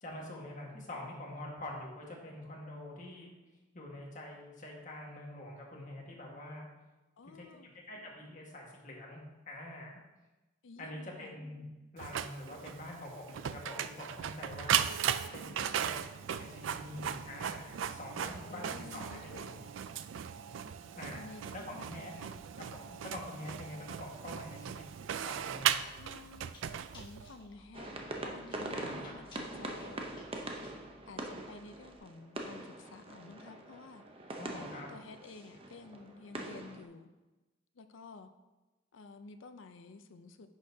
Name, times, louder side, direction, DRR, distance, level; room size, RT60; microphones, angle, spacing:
voice 1, 0.0-3.3 3.7-6.7 7.2-7.4 7.9-9.9 10.8-11.6 11.9-19.6 21.0-21.2 21.5-22.1 22.6-24.8 25.2-25.8 28.7-29.2 34.3-34.9, left 1 dB, 40° left, -1 dB, 1.6 m, -45 dB
voice 2, 7.2-7.8 10.6-11.4 18.4-19.7 21.1-22.5 26.0-26.5 26.9-27.9 28.2-30.0 31.1-34.4 34.7-37.1 37.7-38.3 38.9-40.5, left 4 dB, 80° left, 9 dB, 0.5 m, -52 dB
Printer, 12.0-27.3, right 9 dB, 80° right, 0.4 m, -37 dB
Chewing mastication, 24.7-32.0, left 1 dB, 25° left, 1.5 m, -60 dB
sound 1, 27.7-36.9, right 2 dB, 30° right, 0.7 m, -43 dB
9.8 x 6.5 x 2.8 m, 1.1 s
head